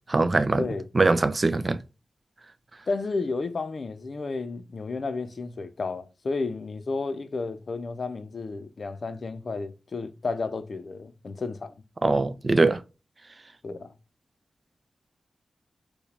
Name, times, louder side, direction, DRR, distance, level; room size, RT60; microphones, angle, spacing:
voice 1, 0.1-0.7 0.9-1.8 12.0-12.8, right 3 dB, 35° right, 0.3 m, -22 dB
voice 2, 2.9-11.8 13.6-13.9, left 3 dB, 55° left, 0.5 m, -32 dB
4.6 x 2.2 x 3.2 m
wide cardioid pair, 85°, 0 cm